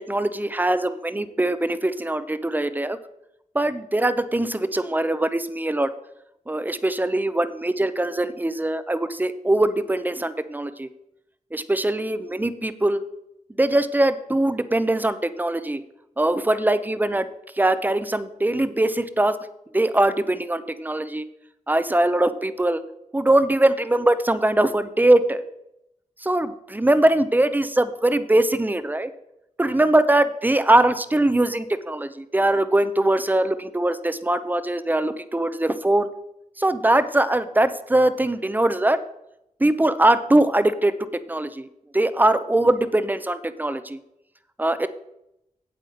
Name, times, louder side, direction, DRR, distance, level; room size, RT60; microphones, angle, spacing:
voice 1, 0.0-3.0 3.5-5.9 6.5-10.9 11.5-13.0 13.6-15.8 16.2-17.3 17.6-19.4 19.7-21.2 21.7-22.8 23.1-25.4 26.2-29.1 29.6-36.1 36.6-39.0 39.6-40.9 41.3-41.7 41.9-44.0 44.6-44.9, right 1 dB, 15° right, 12 dB, 0.7 m, -21 dB
8.2 x 7.8 x 5.1 m, 0.83 s
cardioid pair, 70°, 13 cm